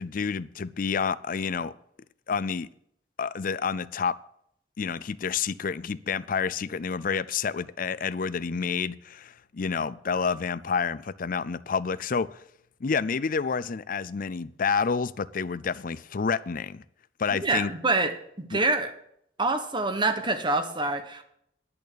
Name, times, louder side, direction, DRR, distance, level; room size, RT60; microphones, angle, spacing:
voice 1, 0.0-1.7 2.3-2.7 3.2-4.2 4.8-12.4 12.8-16.8 17.2-17.7 18.5-18.6, left 5 dB, 50° left, 0.5 m, -29 dB
voice 2, 17.4-18.9 19.4-21.2, right 2 dB, 25° right, 1.3 m, -26 dB
11.0 x 6.5 x 8.5 m
head